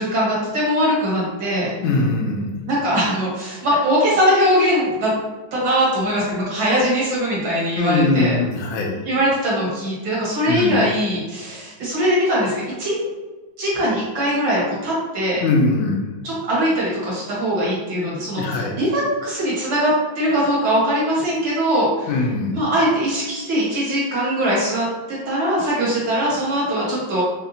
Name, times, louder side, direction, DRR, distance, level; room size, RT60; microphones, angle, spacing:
voice 1, 0.0-1.7 2.7-5.1 5.5-8.4 9.0-13.0 13.6-15.4 16.2-22.1 22.5-24.9 25.3-27.2, equal, 70° right, -7 dB, 2.2 m, -21 dB
voice 2, 1.8-2.6 7.8-8.9 10.5-10.8 15.4-16.1 18.4-18.8 22.1-22.6, left 3 dB, 75° left, 1 dB, 1.3 m, -21 dB
5.3 x 2.4 x 2.7 m, 1.2 s
omnidirectional pair, 2.2 m